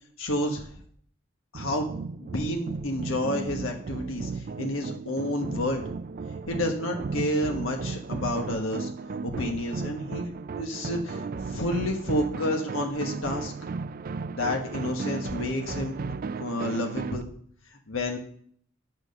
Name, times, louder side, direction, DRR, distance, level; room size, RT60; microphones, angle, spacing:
voice 1, 0.2-0.7 1.5-1.9 2.2-5.8 6.4-13.5 14.3-15.9 16.4-17.3 17.9-18.2, left 1 dB, 80° left, 2 dB, 1.3 m, -30 dB
sound 1, 1.5-17.2, right 4 dB, 45° right, 0.4 m, -35 dB
8.8 x 6.3 x 6.5 m, 0.62 s
head